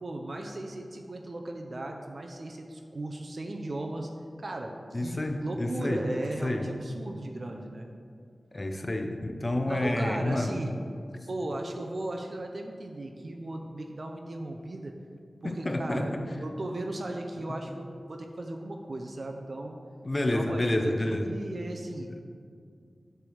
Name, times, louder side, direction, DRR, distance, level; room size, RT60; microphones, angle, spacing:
voice 1, 0.0-4.1 4.4-4.7 5.0-7.9 9.7-10.7 11.3-14.9 15.4-19.8 20.1-22.1, right 1 dB, 55° right, 3 dB, 0.6 m, -37 dB
voice 2, 4.9-6.1 6.4-6.7 8.5-10.5 15.4-16.3 20.0-21.3, left 1 dB, 35° left, 5 dB, 0.6 m, -29 dB
8.8 x 3.5 x 6.4 m, 2.3 s
wide cardioid pair, 90°, 0 cm